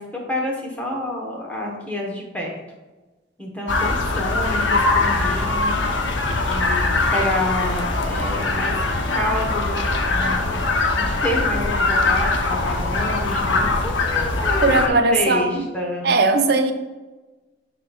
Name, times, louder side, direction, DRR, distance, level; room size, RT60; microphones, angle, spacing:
voice 1, 0.0-2.5 3.4-5.7 6.5-8.7 9.1-10.6 11.0-16.1, left 1 dB, 10° left, -1 dB, 1.1 m, -28 dB
sound 1, 3.7-14.9, left 3 dB, 80° left, 0.9 m, -21 dB
voice 2, 14.6-15.7 16.0-16.7, right 3 dB, 60° right, 7 dB, 0.6 m, -18 dB
11.5 x 4.2 x 2.4 m, 1.2 s
head